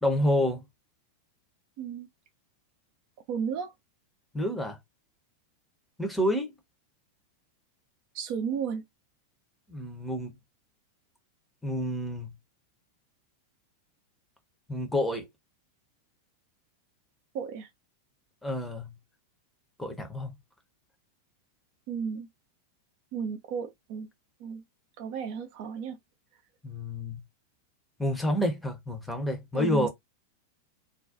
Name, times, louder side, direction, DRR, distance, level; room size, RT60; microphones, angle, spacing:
voice 1, 0.0-0.6 4.3-4.8 6.0-6.5 9.7-10.3 11.6-12.3 14.7-15.3 18.4-18.9 19.8-20.3 26.6-27.2 28.0-29.9, left 1 dB, 5° left, 0.8 m, -28 dB
voice 2, 1.8-2.1 3.3-3.7 8.1-8.8 17.3-17.7 21.9-22.3 23.1-24.1 24.4-24.6 25.0-26.0 29.5-29.9, right 6 dB, 45° right, 0.5 m, -33 dB
2.5 x 2.2 x 2.5 m
figure-of-eight pair, 90°, 0 cm